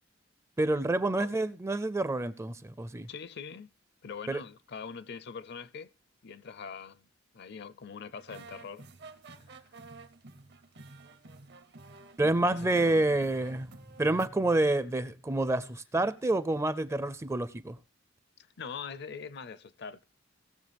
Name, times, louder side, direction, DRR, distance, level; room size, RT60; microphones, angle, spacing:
voice 1, 0.6-3.1 4.3-4.4 12.2-13.7 14.0-17.8, right 2 dB, 15° right, 0.4 m, -28 dB
voice 2, 3.1-3.7 4.0-5.9 6.2-7.1 7.3-8.9 12.5-13.3 18.4-20.1, left 6 dB, 60° left, 0.6 m, -43 dB
sound 1, 8.2-14.3, right 3 dB, 60° right, 0.9 m, -51 dB
18.0 x 6.9 x 3.4 m
head